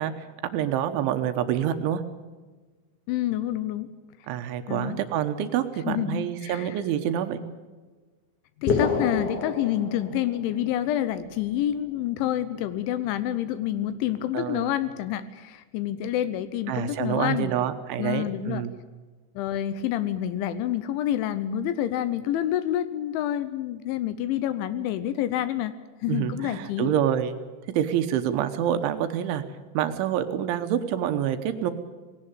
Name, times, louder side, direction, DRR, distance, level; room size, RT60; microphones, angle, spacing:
voice 1, 0.0-2.0 4.3-7.4 14.3-14.7 16.7-18.7 26.1-27.4 27.7-29.4 29.7-31.7, right 10 dB, 75° right, 8 dB, 3.3 m, -27 dB
voice 2, 3.1-3.9 4.7-5.0 5.9-6.8 8.6-17.5 17.9-18.6 19.4-25.7 26.0-26.9, left 11 dB, 80° left, 13 dB, 3.0 m, -28 dB
sound 1, 8.7-10.6, left 5 dB, 45° left, 3.2 m, -27 dB
20.0 x 17.0 x 8.9 m, 1.4 s
omnidirectional pair, 5.8 m